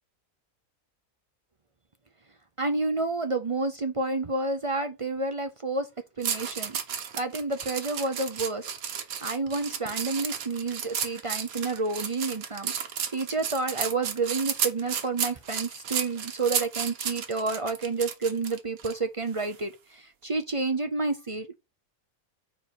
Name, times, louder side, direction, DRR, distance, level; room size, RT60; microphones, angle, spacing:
voice 1, 2.6-5.9 6.2-6.8 7.1-8.7 9.2-12.7 13.1-21.5, right 3 dB, 40° right, 0.4 m, -29 dB
sound 1, 6.2-18.9 19.4-19.6, right 8 dB, 75° right, 1.4 m, -33 dB
4.7 x 4.5 x 5.8 m
omnidirectional pair, 1.5 m